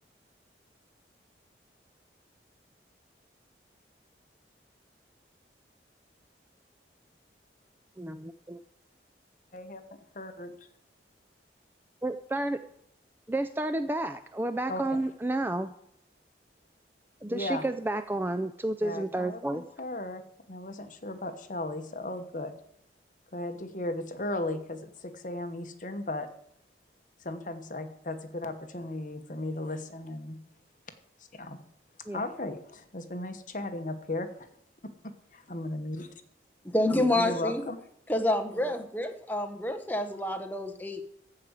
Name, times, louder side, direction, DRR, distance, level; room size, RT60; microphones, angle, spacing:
voice 1, 8.0-8.6 12.0-12.6 13.3-15.7 17.2-19.6 32.1-32.2, right 1 dB, 10° right, 10 dB, 0.4 m, -31 dB
voice 2, 9.5-9.8 10.1-10.5 14.7-15.0 17.3-17.7 18.8-20.2 20.5-22.5 23.3-26.3 27.2-30.4 31.3-31.6 32.1-34.5 35.0-36.1 37.1-37.8, left 1 dB, 45° left, 8 dB, 1.0 m, -36 dB
voice 3, 36.7-37.6 38.1-41.0, left 1 dB, 10° left, 5 dB, 1.0 m, -28 dB
14.5 x 4.8 x 8.0 m, 0.72 s
head